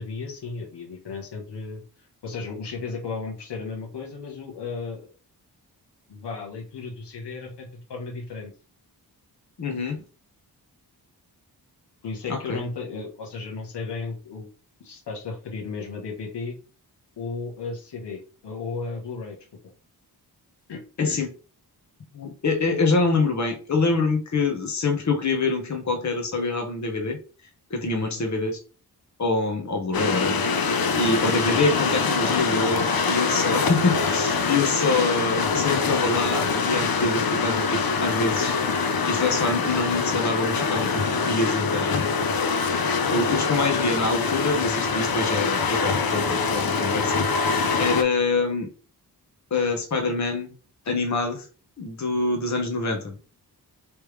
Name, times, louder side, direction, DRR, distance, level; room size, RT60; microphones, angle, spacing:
voice 1, 0.0-1.8 2.2-5.1 6.1-8.5 12.0-14.5 14.8-16.6 17.2-19.4 20.7-21.3 27.9-28.2, left 4 dB, 90° left, 0 dB, 1.2 m, -34 dB
voice 2, 9.6-10.0 12.3-12.6 21.0-21.3 22.1-27.2 27.7-28.6 29.2-30.4 31.0-38.8 39.1-42.7 43.1-47.2 47.8-48.7 49.5-50.5 50.9-51.4 51.8-53.1, left 3 dB, 45° left, 3 dB, 1.0 m, -25 dB
sound 1, 29.9-48.0, left 5 dB, 60° left, 0.6 m, -24 dB
3.3 x 3.2 x 3.2 m, 0.37 s
cardioid pair, 70°, 40 cm